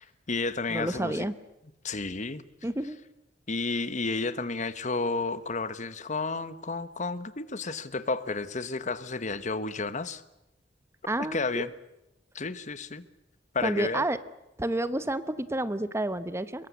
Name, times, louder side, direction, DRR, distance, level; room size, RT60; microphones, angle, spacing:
voice 1, 0.0-1.3 1.8-2.4 3.5-10.2 11.3-11.7 12.3-13.0 13.5-14.1, left 3 dB, 40° left, 14 dB, 1.2 m, -31 dB
voice 2, 0.7-1.3 2.6-3.0 11.1-11.7 13.6-14.2 14.6-16.7, right 1 dB, 15° right, 13 dB, 0.9 m, -30 dB
24.0 x 22.5 x 8.3 m, 0.91 s
head